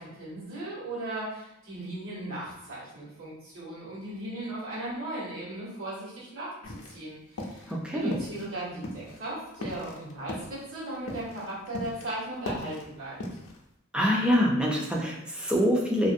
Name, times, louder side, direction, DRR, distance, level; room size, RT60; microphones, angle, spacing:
voice 1, 0.0-13.2, right 1 dB, 70° right, -8 dB, 1.2 m, -37 dB
sound 1, 6.6-7.1 7.4-7.7 8.1-8.5 8.8-12.1 12.3-13.6, left 1 dB, 75° left, 0.5 m, -38 dB
voice 2, 7.7-8.2 13.9-16.1, equal, 5° right, -2 dB, 0.3 m, -25 dB
2.5 x 2.1 x 2.5 m, 0.83 s
head